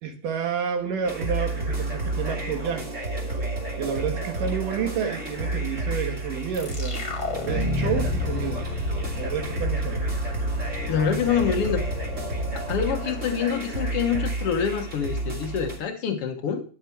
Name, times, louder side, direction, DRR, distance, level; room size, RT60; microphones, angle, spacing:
voice 1, 0.0-2.9 3.7-7.1 7.4-8.7 9.1-10.1, right 7 dB, 65° right, 5 dB, 2.9 m, -30 dB
sound 1, 1.0-15.8, right 2 dB, 25° right, 2.0 m, -30 dB
sound 2, 6.5-13.8, left 4 dB, 30° left, 1.9 m, -33 dB
voice 2, 10.9-11.8 12.7-16.6, left 7 dB, 80° left, 4 dB, 1.3 m, -26 dB
11.5 x 8.9 x 4.5 m, 0.39 s
omnidirectional pair, 4.5 m